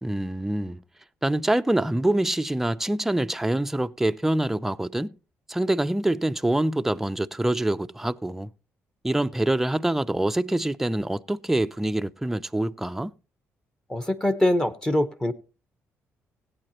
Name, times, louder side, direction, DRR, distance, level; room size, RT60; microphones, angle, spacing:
voice 1, 0.0-0.8 1.2-5.2 5.5-8.5 9.0-13.1, right 1 dB, 5° right, 0.4 m, -25 dB
voice 2, 13.9-15.3, left 1 dB, 15° left, 0.9 m, -23 dB
17.0 x 8.5 x 2.9 m
cardioid pair, 95°, 5 cm